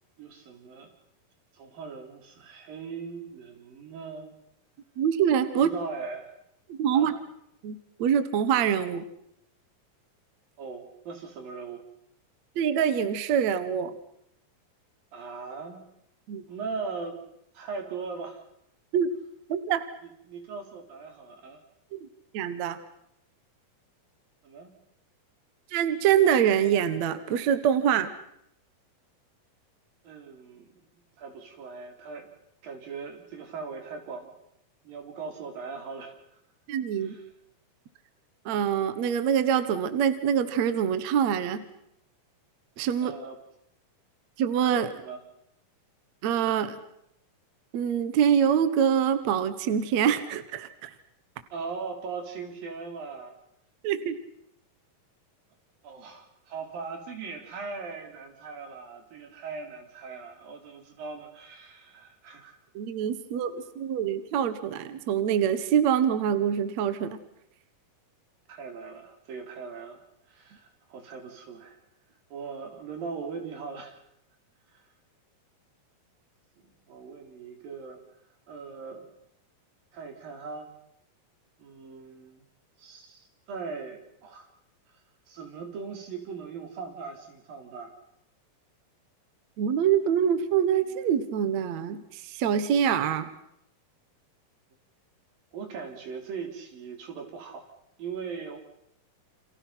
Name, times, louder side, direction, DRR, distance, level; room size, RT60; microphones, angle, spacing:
voice 1, 0.2-0.9 1.5-4.4 5.5-6.3 6.9-7.1 10.6-11.8 15.1-15.8 16.5-17.2 17.6-18.4 20.0-21.6 24.4-24.7 30.0-30.8 31.2-32.3 32.6-34.3 34.8-36.2 37.0-37.3 43.0-43.4 45.0-45.2 51.5-53.3 55.8-62.6 68.5-71.8 72.3-74.0 74.7-74.8 76.6-78.0 78.5-79.1 79.9-80.7 81.6-82.4 82.8-84.5 85.3-88.0 95.5-97.7 98.0-98.6, right 5 dB, 85° right, 4 dB, 5.4 m, -39 dB
voice 2, 5.0-5.7 6.7-7.1 7.6-9.1 12.6-13.9 16.3-16.5 18.9-19.1 19.5-19.8 21.9-22.1 22.3-22.8 25.7-28.1 36.7-37.2 38.5-41.7 42.8-43.1 44.4-45.0 46.2-46.8 47.7-50.9 53.8-54.1 62.8-67.2 89.6-93.3, right 8 dB, 60° right, 11 dB, 2.4 m, -25 dB
29.5 x 28.0 x 5.8 m, 0.75 s
omnidirectional pair, 3.9 m